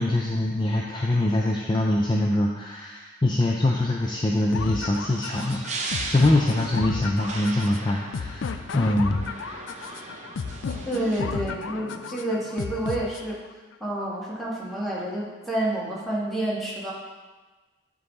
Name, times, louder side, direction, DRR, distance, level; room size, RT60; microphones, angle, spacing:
voice 1, 0.0-9.6, left 1 dB, 25° left, -2 dB, 0.4 m, -24 dB
sound 1, 4.0-11.2, right 3 dB, 35° right, 0.6 m, -38 dB
sound 2, 4.5-13.5, left 5 dB, 80° left, 0.4 m, -33 dB
voice 2, 10.8-13.4 13.8-16.9, right 1 dB, ahead, -7 dB, 1.5 m, -29 dB
9.5 x 3.8 x 4.0 m, 1.3 s
head